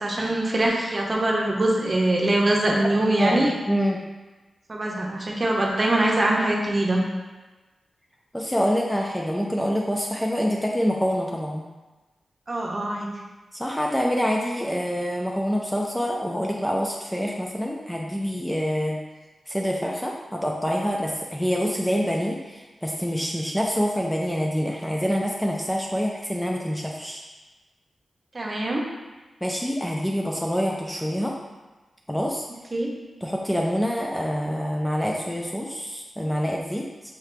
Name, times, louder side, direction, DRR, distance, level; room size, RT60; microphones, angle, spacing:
voice 1, 0.0-3.5 4.7-7.0 12.5-13.1 28.3-28.8 32.7-32.9, right 1 dB, 35° right, -1 dB, 0.8 m, -23 dB
voice 2, 3.2-4.0 8.3-11.6 13.5-19.0 19.5-27.2 29.4-31.3 32.1-32.5 33.2-36.8, equal, 5° left, -1 dB, 0.4 m, -26 dB
5.8 x 2.8 x 3.3 m, 1.2 s
wide cardioid pair, 110°, 0 cm